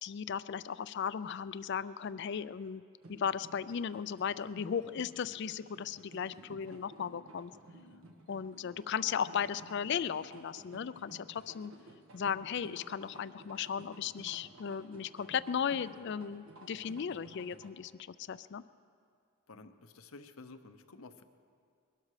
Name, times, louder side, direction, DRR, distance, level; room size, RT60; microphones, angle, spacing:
voice 1, 0.0-2.8 3.1-7.5 8.3-11.7 12.1-18.6, left 7 dB, 55° left, 15 dB, 0.4 m, -36 dB
sound 1, 3.0-17.7, right 1 dB, 75° right, 1.4 m, -55 dB
voice 2, 6.5-6.8 19.5-21.2, left 3 dB, 85° left, 9 dB, 0.8 m, -52 dB
22.0 x 12.5 x 4.9 m, 2.3 s
head